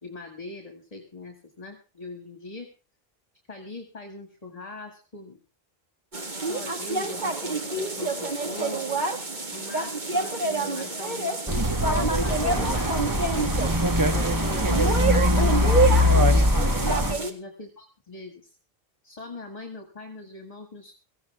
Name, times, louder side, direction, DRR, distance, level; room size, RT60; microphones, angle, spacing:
voice 1, 0.0-2.7 3.5-5.4 6.4-8.9 9.5-14.4 14.8-18.6 19.0-20.9, left 2 dB, 35° left, 4 dB, 2.2 m, -41 dB
sound 1, 6.1-17.3, right 3 dB, 45° right, 1.9 m, -28 dB
sound 2, 11.5-17.1, left 1 dB, 20° right, 1.1 m, -22 dB
17.5 x 15.5 x 3.5 m, 0.33 s
omnidirectional pair, 1.1 m